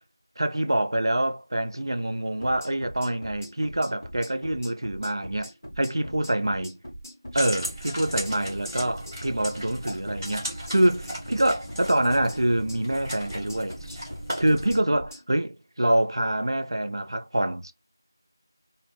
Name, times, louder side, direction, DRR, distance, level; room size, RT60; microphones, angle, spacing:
voice 1, 0.4-5.5 5.8-6.8 7.3-14.0 14.4-17.7, right 1 dB, 80° right, 0.4 m, -26 dB
sound 1, 2.4-15.2, equal, 40° left, 1.0 m, -42 dB
sound 2, 7.3-14.8, equal, 5° right, 0.4 m, -36 dB
2.3 x 2.0 x 3.2 m
figure-of-eight pair, 180°, 2 cm